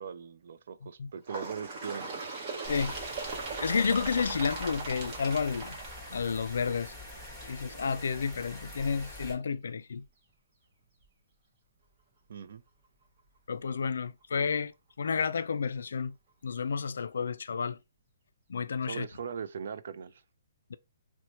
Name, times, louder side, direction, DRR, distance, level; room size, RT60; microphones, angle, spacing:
voice 1, 0.0-2.1 12.3-12.6 18.8-20.2, right 7 dB, 60° right, 0.4 m, -40 dB
Bird, 1.3-6.7 7.6-7.7 8.1-8.2 9.0-9.1 10.0-10.1 11.0-11.1, right 3 dB, 35° right, 0.9 m, -39 dB
sound 1, 2.6-9.3, left 1 dB, 5° right, 1.3 m, -45 dB
voice 2, 3.6-5.7 6.1-6.9 7.5-10.0 13.5-14.7 15.0-16.1 16.4-17.8 18.5-19.1 20.7-20.8, left 5 dB, 75° left, 0.3 m, -31 dB
2.9 x 2.1 x 4.1 m
hypercardioid pair, 160°, 0 cm